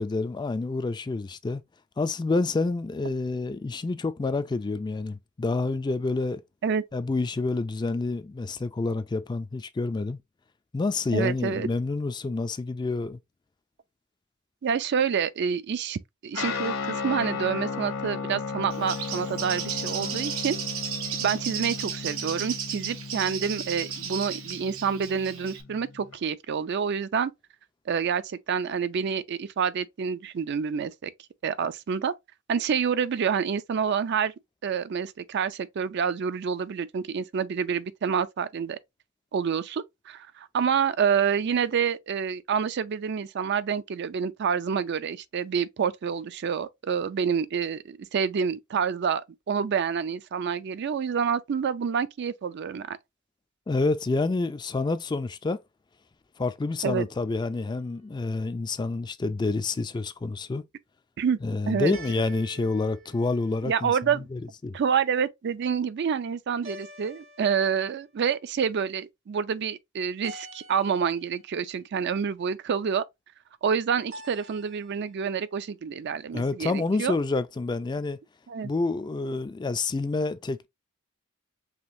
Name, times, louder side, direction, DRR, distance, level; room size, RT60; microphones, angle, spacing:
voice 1, 0.0-1.6 2.0-6.4 6.9-10.2 10.7-13.2 53.7-55.6 56.4-60.6 61.4-64.8 76.3-78.2 78.6-80.7, left 3 dB, 20° left, 0.3 m, -28 dB
voice 2, 11.1-11.7 14.6-20.6 21.2-27.3 27.9-31.1 31.4-32.1 32.5-34.3 34.6-38.8 39.3-53.0 56.8-57.1 61.2-61.4 61.7-62.0 63.6-64.3 64.7-73.0 73.6-77.2 78.5-78.7, right 6 dB, 55° right, 0.4 m, -28 dB
Guitar, 16.3-26.2, left 5 dB, 80° left, 1.2 m, -35 dB
Bird, 18.7-25.6, right 8 dB, 90° right, 0.9 m, -34 dB
sound 1, 57.5-58.2 61.9-63.9 66.6-68.0 70.2-71.4 74.1-75.1, right 2 dB, 70° right, 1.9 m, -46 dB
5.0 x 3.0 x 2.6 m
head